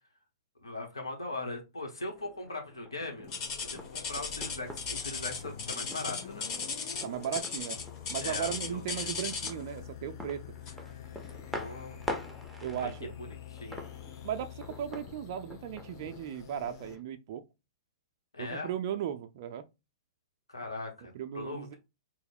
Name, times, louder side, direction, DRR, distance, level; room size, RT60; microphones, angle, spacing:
voice 1, 0.6-3.3 3.7-6.5 8.2-9.1 11.5-12.0 12.8-12.9 13.5-13.8 18.3-18.7 20.5-21.8, left 2 dB, 85° left, 1.1 m, -39 dB
sound 1, 2.1-17.0, equal, ahead, 0.6 m, -46 dB
sound 2, 3.2-17.0, left 10 dB, 55° left, 0.5 m, -47 dB
sound 3, 3.3-9.7 10.6-10.9 11.5-11.6 12.2-12.3, left 5 dB, 40° left, 1.1 m, -36 dB
voice 2, 7.0-7.8 8.1-10.4 12.6-13.1 14.2-17.4 18.4-19.6 21.1-21.8, right 9 dB, 50° right, 0.4 m, -36 dB
3.1 x 2.0 x 4.2 m
hypercardioid pair, 115°, 2 cm